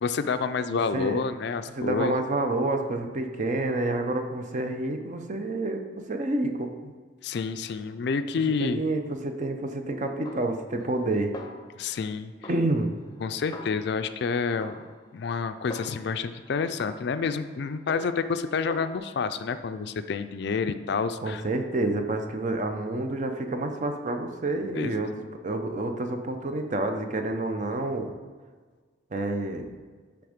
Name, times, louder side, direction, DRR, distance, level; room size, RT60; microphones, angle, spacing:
voice 1, 0.0-2.2 7.2-8.8 11.8-12.3 13.2-14.8 15.1-21.4 24.7-25.0, left 5 dB, 60° left, 11 dB, 0.4 m, -29 dB
voice 2, 0.7-1.2 1.8-5.8 6.1-6.9 8.6-11.3 12.5-13.0 21.2-25.1 25.4-28.1 29.1-29.7, right 2 dB, 40° right, 5 dB, 0.6 m, -28 dB
Snare drum, 10.3-11.1 11.3-12.1 12.4-14.2 14.6-16.3 16.8-18.4 18.7-19.0, left 2 dB, 20° left, 0.6 m, -44 dB
10.5 x 3.5 x 5.1 m, 1.4 s
head